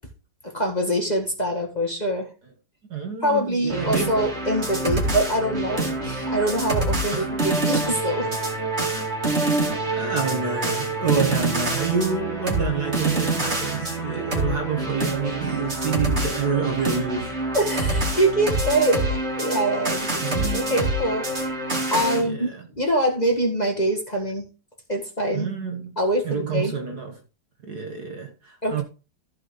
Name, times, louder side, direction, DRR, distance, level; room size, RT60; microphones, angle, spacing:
voice 1, 0.4-2.3 3.2-8.4 15.5-15.8 17.5-21.6 21.9-22.5 22.7-24.4 24.9-25.5 26.0-26.7 28.6-28.8, right 1 dB, 20° left, 1.7 m, -24 dB
voice 2, 2.9-4.2 7.1-7.3 9.9-17.4 20.2-20.8 22.1-22.6 25.3-25.9 26.2-27.2 27.6-28.8, right 5 dB, 50° right, 1.5 m, -28 dB
sound 1, 3.7-22.2, right 2 dB, 30° right, 2.6 m, -26 dB
14.5 x 5.6 x 3.8 m
omnidirectional pair, 2.4 m